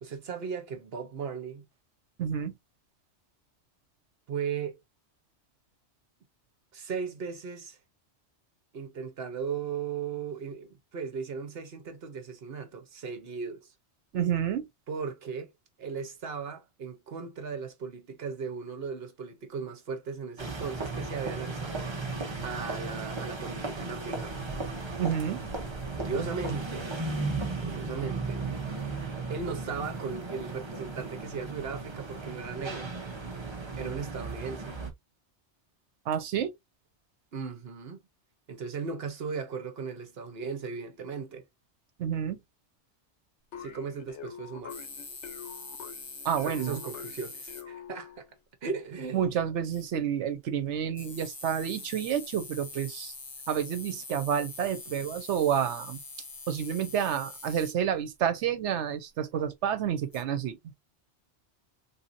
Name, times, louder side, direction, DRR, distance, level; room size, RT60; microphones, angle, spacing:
voice 1, 0.0-1.7 4.3-4.8 6.7-7.8 8.7-13.7 14.9-15.5 15.8-24.4 25.9-27.0 27.6-28.4 29.3-32.9 33.8-34.8 37.3-38.0 38.5-41.4 43.6-44.7 46.4-48.3 48.6-49.4, right 5 dB, 65° right, 1.1 m, -37 dB
voice 2, 2.2-2.5 14.1-14.7 25.0-25.4 36.1-36.5 42.0-42.4 46.2-46.8 49.1-53.1 53.5-56.0 56.5-60.6, right 9 dB, 90° right, 1.0 m, -29 dB
sound 1, 20.4-34.9, right 3 dB, 25° right, 0.8 m, -35 dB
sound 2, 43.5-48.3, left 8 dB, 90° left, 1.1 m, -45 dB
sound 3, 44.7-47.6 49.7-49.8 51.0-57.7 60.1-60.2, left 3 dB, 25° left, 0.6 m, -44 dB
3.7 x 2.7 x 2.5 m
omnidirectional pair, 1.2 m